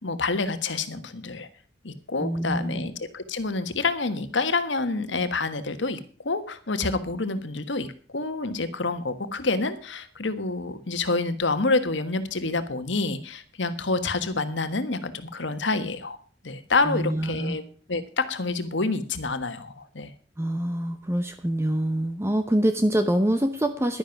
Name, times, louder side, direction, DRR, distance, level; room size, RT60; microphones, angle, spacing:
voice 1, 0.0-1.5 1.8-7.9 8.1-16.2 16.4-17.6 17.9-20.1, left 3 dB, 75° left, 10 dB, 1.4 m, -28 dB
voice 2, 2.2-2.9 16.9-17.6 20.4-24.0, right 1 dB, 15° right, 8 dB, 0.7 m, -25 dB
11.5 x 10.5 x 5.9 m, 0.41 s
head